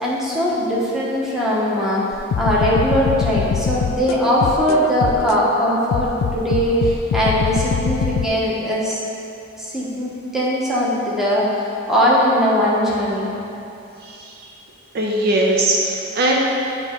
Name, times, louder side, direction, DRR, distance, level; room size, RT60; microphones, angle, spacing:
voice 1, 0.0-2.0 2.4-9.0 9.6-13.3, equal, ahead, -7 dB, 1.0 m, -20 dB
sound 1, 2.1-5.4 5.9-8.3, left 6 dB, 85° left, 0.3 m, -23 dB
voice 2, 14.0-14.4 14.9-16.4, right 1 dB, 50° right, -2 dB, 0.6 m, -20 dB
8.8 x 3.0 x 4.4 m, 2.8 s
head